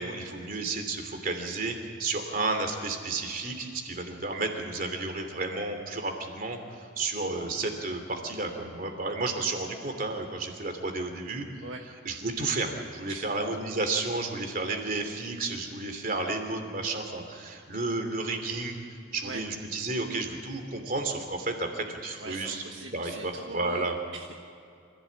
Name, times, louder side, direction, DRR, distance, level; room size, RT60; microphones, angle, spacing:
voice 1, 0.0-11.5 12.0-18.8 19.1-22.6 22.9-24.0, right 3 dB, 45° right, 5 dB, 3.0 m, -32 dB
voice 2, 22.2-24.4, right 3 dB, 70° right, 2 dB, 1.4 m, -42 dB
26.5 x 16.0 x 8.7 m, 2.4 s
head